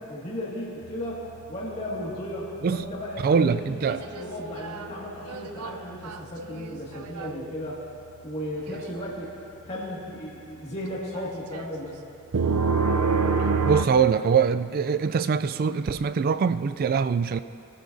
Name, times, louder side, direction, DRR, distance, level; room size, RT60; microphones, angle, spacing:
voice 1, 0.1-7.8 8.2-9.4 9.6-11.9, left 1 dB, 30° left, -6 dB, 2.0 m, -35 dB
sound 1, 0.8-3.1 3.6-4.3 4.6-5.0 5.3-7.3 8.7-8.9 11.2-11.7 12.3-13.9, right 4 dB, 85° right, 0.6 m, -27 dB
voice 2, 3.2-4.0 13.7-17.4, right 6 dB, 40° right, 13 dB, 0.3 m, -23 dB
21.5 x 13.0 x 2.7 m, 2.7 s
head